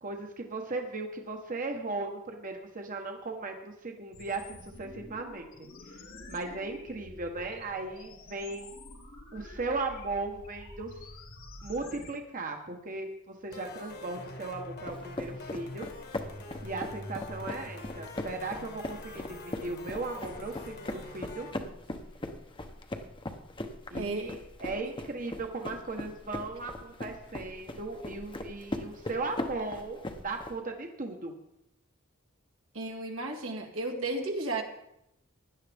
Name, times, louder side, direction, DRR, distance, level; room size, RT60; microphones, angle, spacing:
voice 1, 0.0-5.7 6.3-8.7 9.3-10.9 11.6-15.9 16.6-21.5 23.9-31.3, right 3 dB, 40° right, 3 dB, 1.1 m, -37 dB
sound 1, 4.1-12.1, left 2 dB, 80° left, 3.8 m, -48 dB
sound 2, 13.5-21.5, left 2 dB, 50° left, 1.5 m, -45 dB
sound 3, 14.9-30.5, left 1 dB, 25° left, 0.9 m, -40 dB
voice 2, 24.0-24.4 32.7-34.6, right 2 dB, 85° right, 2 dB, 2.0 m, -34 dB
16.5 x 10.5 x 3.5 m, 0.81 s
head